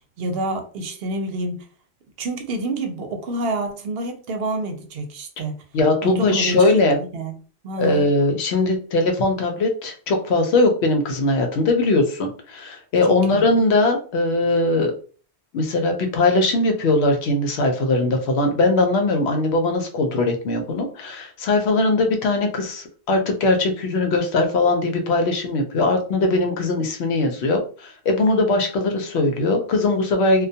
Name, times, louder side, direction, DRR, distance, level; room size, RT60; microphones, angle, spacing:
voice 1, 0.2-1.7 2.2-5.5 6.0-6.7 7.0-7.3 7.6-8.1 13.1-13.4, right 2 dB, 70° right, 0.7 m, -28 dB
voice 2, 5.7-7.0 7.8-14.9 15.5-30.5, left 2 dB, 80° left, 0.9 m, -20 dB
2.2 x 2.2 x 2.6 m
omnidirectional pair, 1.1 m